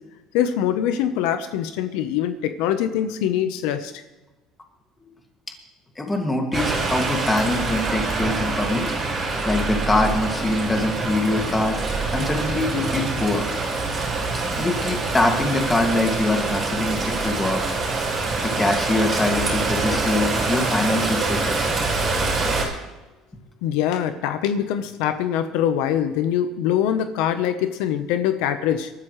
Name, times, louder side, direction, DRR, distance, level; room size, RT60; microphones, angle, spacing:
voice 1, 0.3-4.0 23.6-28.9, left 10 dB, 85° left, 10 dB, 1.0 m, -23 dB
voice 2, 6.0-8.9 9.4-11.8 12.1-13.4 14.6-17.6 18.4-21.6, left 2 dB, 15° left, 3 dB, 2.3 m, -23 dB
sound 1, 6.5-22.6, right 3 dB, 30° right, 4.7 m, -25 dB
22.5 x 12.5 x 3.3 m, 1.1 s
cardioid pair, 140°, 0 cm